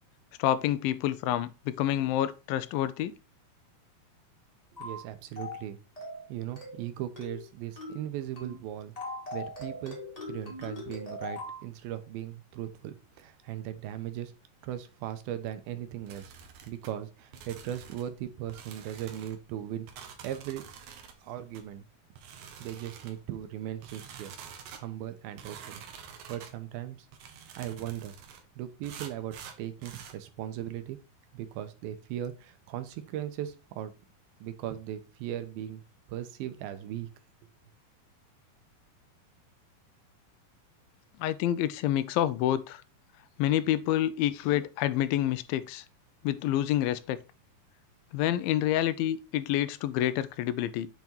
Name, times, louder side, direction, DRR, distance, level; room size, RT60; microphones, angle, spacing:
voice 1, 0.4-3.1 41.2-42.8 43.4-45.8 46.2-47.2 48.1-50.9, left 12 dB, 85° left, 2.3 m, -28 dB
voice 2, 4.7-5.8 6.3-8.9 9.3-10.0 10.3-14.3 14.6-16.3 16.7-19.9 20.2-20.6 21.2-21.9 22.6-24.3 24.7-27.0 27.6-28.1 28.6-31.0 31.3-33.9 34.4-35.8 36.1-37.1, right 11 dB, 90° right, 2.6 m, -38 dB
sound 1, 4.8-5.0 5.4-5.6 6.0-6.2 6.6-6.8 7.2-7.4 7.8-8.0 8.4-8.6 9.0-11.6, left 2 dB, 20° left, 1.2 m, -40 dB
sound 2, 16.1-16.9 17.3-18.1 18.5-19.4 19.9-21.2 21.5-21.7 22.1-23.2 23.8-24.8 25.4-26.5 27.1-28.4 28.8-30.2, right 7 dB, 70° right, 2.0 m, -47 dB
7.8 x 3.6 x 4.3 m
omnidirectional pair, 4.2 m